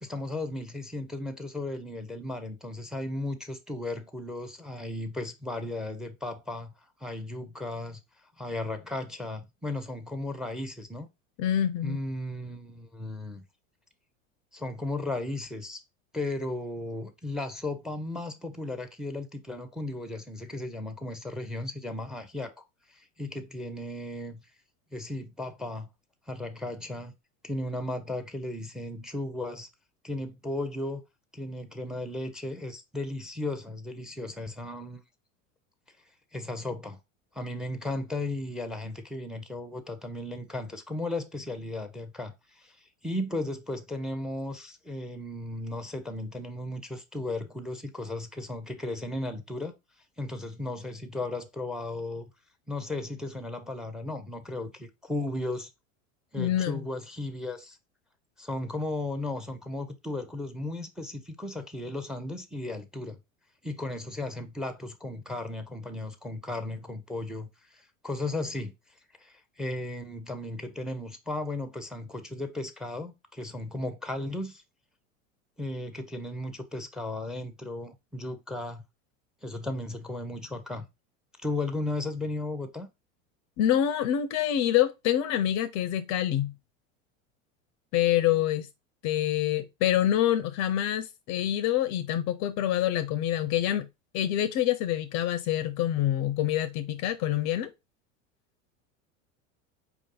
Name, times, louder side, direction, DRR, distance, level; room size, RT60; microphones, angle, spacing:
voice 1, 0.0-6.7 7.0-8.0 8.4-11.1 11.8-13.4 14.5-15.8 16.1-24.4 24.9-25.9 26.3-27.1 27.4-29.7 30.0-31.0 31.3-35.0 36.3-37.0 37.3-49.7 50.2-52.3 52.7-55.7 56.3-57.8 58.4-63.2 63.6-68.7 69.2-74.6 75.6-78.8 79.4-80.9 81.4-82.9, left 2 dB, ahead, 0.6 m, -35 dB
voice 2, 11.4-12.0 56.4-56.9 83.6-86.5 87.9-88.7 89.0-93.9 94.1-97.7, left 11 dB, 45° left, 0.5 m, -26 dB
4.6 x 2.6 x 3.7 m
hypercardioid pair, 90°, 40 cm